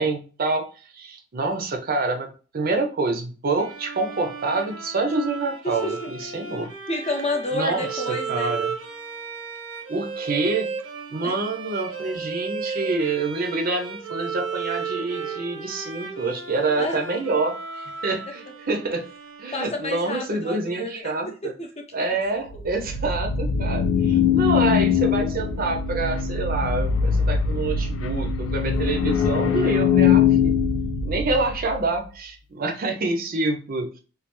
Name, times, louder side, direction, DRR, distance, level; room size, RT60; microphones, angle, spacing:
voice 1, 0.0-2.3 2.5-6.7 7.5-8.7 9.9-10.7 11.1-19.1 19.4-21.5 21.9-30.5 31.0-33.9, right 3 dB, 45° right, 4 dB, 0.6 m, -27 dB
Bowed string instrument, 3.6-20.1, right 5 dB, 85° right, 0.8 m, -34 dB
voice 2, 5.6-6.3 6.9-8.5 11.2-11.3 16.7-17.0 19.5-22.4, left 2 dB, 35° left, 3 dB, 0.6 m, -30 dB
sound 1, 22.5-31.8, left 7 dB, 80° left, 0.4 m, -22 dB
3.2 x 2.3 x 2.9 m, 0.36 s
head